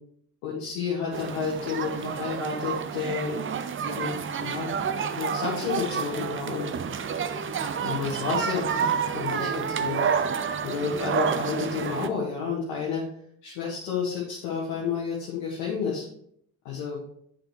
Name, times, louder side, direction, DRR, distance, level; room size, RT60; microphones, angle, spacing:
voice 1, 0.4-3.3 3.8-4.8 5.1-6.7 7.8-8.9 9.1-10.1 10.6-13.0 13.4-16.0 16.6-17.0, left 6 dB, 65° left, -5 dB, 1.5 m, -30 dB
sound 1, 1.1-12.1, right 6 dB, 25° right, 0.5 m, -29 dB
9.1 x 5.3 x 3.1 m, 0.67 s
figure-of-eight pair, 40°, 48 cm